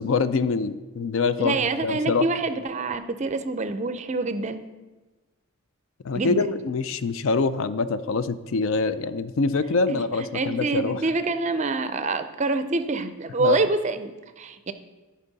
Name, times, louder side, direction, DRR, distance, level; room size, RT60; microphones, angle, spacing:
voice 1, 0.0-1.6 1.8-2.3 6.0-11.0 13.4-13.6, left 4 dB, 65° left, 13 dB, 0.4 m, -25 dB
voice 2, 1.4-4.6 6.1-6.6 9.9-14.1 14.4-14.7, right 3 dB, 30° right, 11 dB, 0.4 m, -26 dB
13.5 x 5.3 x 4.0 m, 1.2 s
head